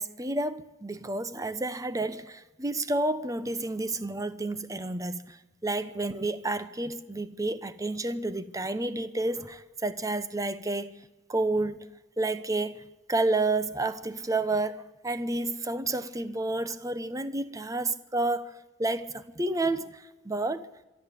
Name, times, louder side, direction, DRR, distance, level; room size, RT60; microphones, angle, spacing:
voice 1, 0.0-11.0 11.3-11.9 12.2-12.8 13.1-20.7, right 2 dB, 20° right, 0.9 m, -30 dB
25.0 x 12.5 x 8.4 m
head